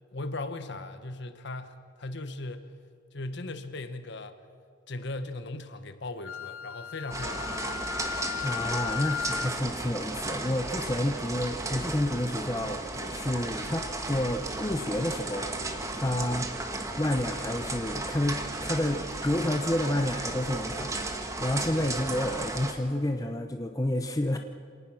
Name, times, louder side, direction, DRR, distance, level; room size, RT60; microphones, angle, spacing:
voice 1, 0.1-2.7 3.1-4.4 4.9-8.2 15.9-16.1 20.5-20.7, left 2 dB, 55° left, 9 dB, 1.2 m, -38 dB
Wind instrument woodwind instrument, 6.2-9.6, left 9 dB, 80° left, 0.7 m, -36 dB
sound 1, 7.1-22.7, right 2 dB, 15° right, 1.4 m, -34 dB
voice 2, 8.4-15.5 15.9-16.5 17.0-20.9 21.4-24.4, left 1 dB, 15° left, 5 dB, 0.8 m, -29 dB
26.5 x 18.5 x 6.2 m, 2.2 s
head